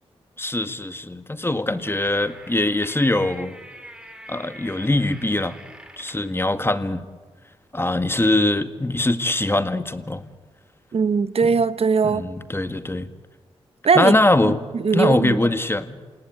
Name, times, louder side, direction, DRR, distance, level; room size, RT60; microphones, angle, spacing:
voice 1, 0.4-3.6 4.3-5.6 6.0-7.0 7.7-10.2 12.0-13.1 14.0-14.7 14.9-16.0, left 2 dB, 20° left, 10 dB, 1.9 m, -22 dB
sound 1, 1.5-6.3, right 1 dB, 10° right, 3.4 m, -44 dB
voice 2, 10.9-12.2 13.8-14.1 14.4-15.4, right 5 dB, 60° right, 14 dB, 1.0 m, -20 dB
28.0 x 18.0 x 9.1 m, 1.4 s
supercardioid pair, 40°, 11 cm